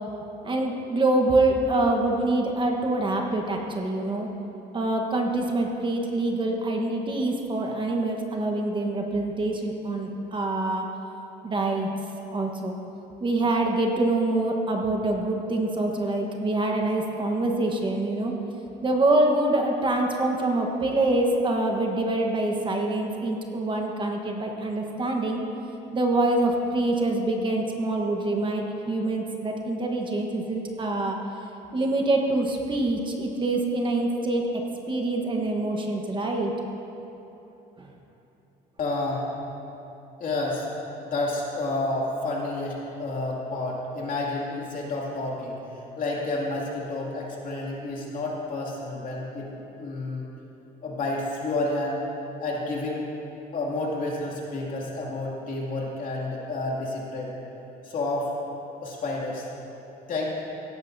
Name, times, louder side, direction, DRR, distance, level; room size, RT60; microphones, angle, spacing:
voice 1, 0.4-4.3 4.7-10.9 11.4-11.9 12.3-12.8 13.2-18.3 18.8-25.4 25.9-31.2 31.7-34.5 34.9-36.5 37.8-37.9, right 2 dB, 30° right, 2 dB, 1.2 m, -25 dB
voice 2, 38.8-39.2 40.2-40.7 41.0-45.6 46.0-50.3 50.8-52.0 52.4-53.0 53.5-57.4 57.8-58.3 58.8-59.5 60.1-60.3, left 2 dB, 55° left, -3 dB, 2.4 m, -30 dB
16.5 x 12.0 x 2.7 m, 3.0 s
cardioid pair, 110°, 17 cm